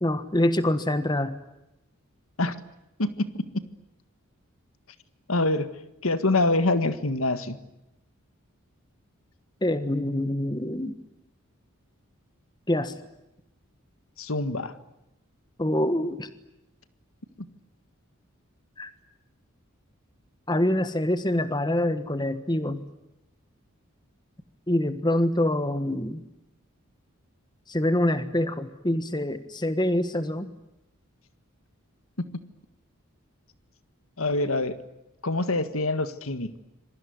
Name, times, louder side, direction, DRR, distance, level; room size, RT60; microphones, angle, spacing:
voice 1, 0.0-1.4 9.6-10.9 12.7-13.0 15.6-16.3 18.8-18.9 20.5-22.8 24.7-26.2 27.7-30.5, left 1 dB, 20° left, 11 dB, 1.4 m, -25 dB
voice 2, 3.0-3.4 5.3-5.7 6.0-7.6 14.2-14.7 34.2-34.8 35.2-36.6, left 2 dB, 75° left, 11 dB, 1.8 m, -25 dB
27.5 x 22.5 x 9.5 m, 0.91 s
head